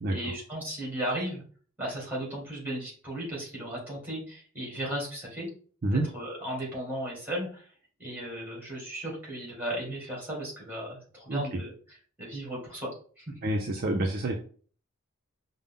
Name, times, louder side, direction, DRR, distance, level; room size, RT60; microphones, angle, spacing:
voice 1, 0.1-1.4 1.8-5.5 5.9-7.7 8.0-11.7 12.2-12.9 13.2-13.4, right 1 dB, 10° right, -3 dB, 2.0 m, -35 dB
voice 2, 11.3-11.6 13.4-14.4, right 1 dB, 45° right, 1 dB, 0.5 m, -28 dB
5.1 x 2.1 x 3.7 m, 0.44 s
head